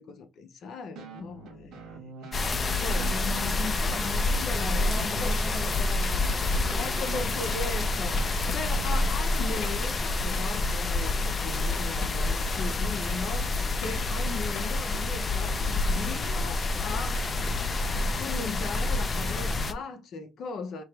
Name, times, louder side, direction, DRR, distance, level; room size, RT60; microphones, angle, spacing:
voice 1, 0.0-5.3 6.7-13.5 13.8-17.2 18.2-20.8, left 4 dB, 55° left, 0.8 m, -38 dB
sound 1, 1.0-9.1, right 5 dB, 75° right, 1.3 m, -44 dB
sound 2, 2.3-19.7, left 2 dB, 25° left, 0.5 m, -28 dB
voice 2, 4.5-7.3, equal, 5° left, 1.5 m, -41 dB
sound 3, 4.7-16.0, left 6 dB, 75° left, 1.0 m, -47 dB
4.9 x 2.9 x 3.3 m
cardioid pair, 145°, 0 cm